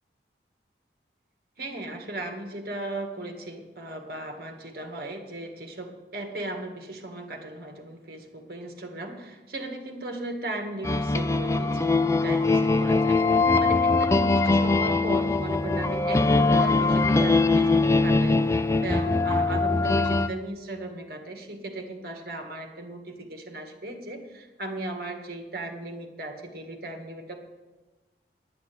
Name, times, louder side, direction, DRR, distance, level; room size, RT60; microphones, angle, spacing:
voice 1, 1.6-27.5, right 2 dB, 55° right, 4 dB, 1.9 m, -37 dB
sound 1, 10.8-20.3, left 3 dB, 15° left, 0.4 m, -22 dB
10.0 x 10.0 x 8.5 m, 1.2 s
head